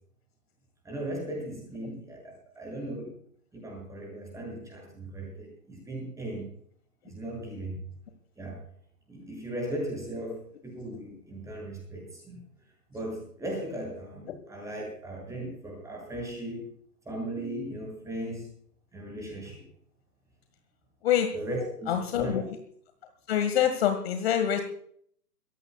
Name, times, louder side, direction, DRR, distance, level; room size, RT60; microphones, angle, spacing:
voice 1, 0.8-3.2 3.5-6.5 7.0-7.8 8.4-8.6 9.1-12.4 12.9-16.7 17.1-18.5 18.9-19.7 21.3-22.4, right 1 dB, 5° right, -1 dB, 7.0 m, -37 dB
voice 2, 21.9-22.4 23.3-24.6, left 10 dB, 40° left, 6 dB, 1.8 m, -25 dB
23.0 x 16.5 x 2.3 m, 0.62 s
hypercardioid pair, 145°, 48 cm